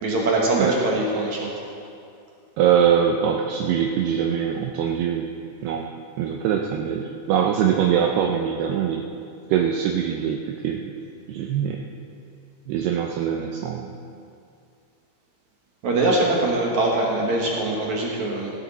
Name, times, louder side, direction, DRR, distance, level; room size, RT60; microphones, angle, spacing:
voice 1, 0.0-1.5 15.8-18.5, right 2 dB, 65° right, -2 dB, 1.9 m, -22 dB
voice 2, 2.6-5.3 5.6-5.9 6.2-9.1 9.5-10.9 11.3-11.8 12.7-13.9, right 8 dB, 80° right, 2 dB, 2.4 m, -23 dB
16.0 x 12.5 x 4.1 m, 2.5 s
omnidirectional pair, 5.2 m